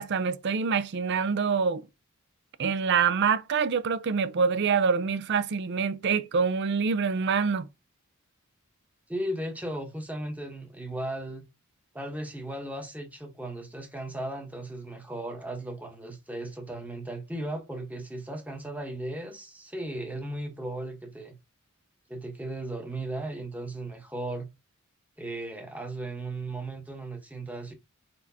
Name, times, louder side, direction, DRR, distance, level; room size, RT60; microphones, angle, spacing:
voice 1, 0.0-1.8 2.6-7.7, right 5 dB, 55° right, 0.5 m, -26 dB
voice 2, 9.1-11.4 11.9-21.4 22.1-24.5 25.2-27.7, right 1 dB, 5° right, 1.0 m, -36 dB
4.6 x 4.3 x 2.7 m
head